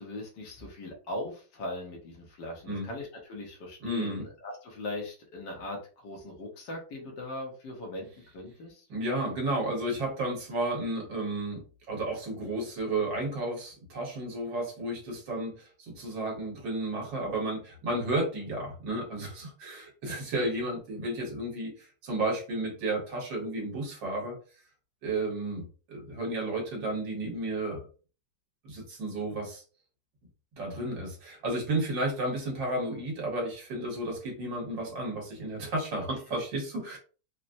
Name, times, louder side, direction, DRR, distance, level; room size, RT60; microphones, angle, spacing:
voice 1, 0.0-8.1 8.3-8.8, left 1 dB, 65° left, 0 dB, 1.4 m, -39 dB
voice 2, 3.8-4.3 8.9-24.4 25.0-27.9 28.6-29.6 30.6-37.0, right 2 dB, 65° right, 0 dB, 1.8 m, -32 dB
4.1 x 2.0 x 2.6 m, 0.37 s
omnidirectional pair, 2.2 m